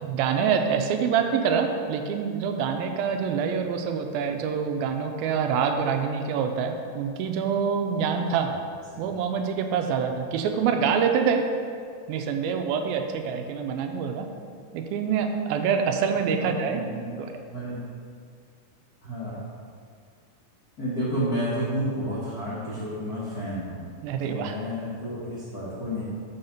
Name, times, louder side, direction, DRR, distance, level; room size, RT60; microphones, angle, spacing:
voice 1, 0.0-8.5 9.0-11.5 12.1-14.3 14.7-16.8 17.2-17.3 24.0-24.6, right 6 dB, 85° right, 5 dB, 2.4 m, -26 dB
voice 2, 16.4-17.8 19.0-19.4 20.8-23.8 24.2-26.0, equal, 85° left, -10 dB, 0.8 m, -31 dB
6.2 x 5.7 x 5.2 m, 2.2 s
omnidirectional pair, 4.2 m